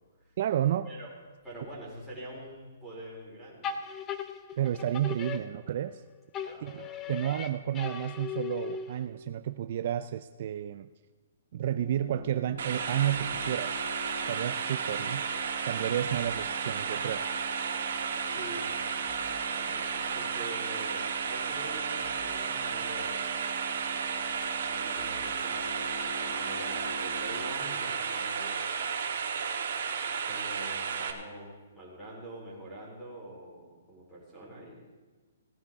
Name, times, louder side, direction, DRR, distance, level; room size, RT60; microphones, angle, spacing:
voice 1, 0.4-0.9 4.6-6.0 6.6-10.9 11.5-13.9 14.3-15.2 15.7-17.2, right 11 dB, 45° right, 11 dB, 0.4 m, -31 dB
voice 2, 1.4-3.7 6.4-7.3 18.3-23.3 24.7-28.7 30.2-34.9, right 1 dB, ahead, -7 dB, 3.8 m, -45 dB
sound 1, 3.6-6.0 6.3-9.2, left 7 dB, 15° left, 0.5 m, -38 dB
sound 2, 11.7-27.5, equal, 45° left, 2.7 m, -45 dB
sound 3, 12.6-31.1, right 6 dB, 65° right, 1.4 m, -33 dB
17.5 x 10.5 x 3.6 m, 1.3 s
hypercardioid pair, 165°, 0 cm